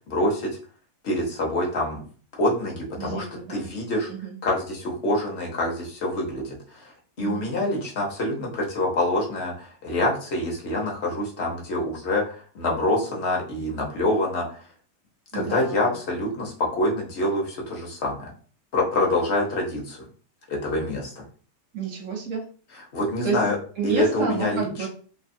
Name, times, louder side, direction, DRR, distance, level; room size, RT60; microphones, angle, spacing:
voice 1, 0.1-0.6 1.0-2.0 2.4-4.1 4.4-6.9 7.2-14.6 15.3-18.3 18.7-20.1 20.5-21.2 22.9-23.6 23.8-24.9, left 1 dB, 50° left, -1 dB, 0.9 m, -26 dB
voice 2, 3.0-3.7 4.1-4.4 7.2-7.5 15.3-16.0 21.7-22.4 23.2-23.4 23.8-24.9, right 6 dB, 65° right, 1 dB, 0.8 m, -30 dB
2.8 x 2.3 x 2.6 m, 0.41 s
omnidirectional pair, 1.8 m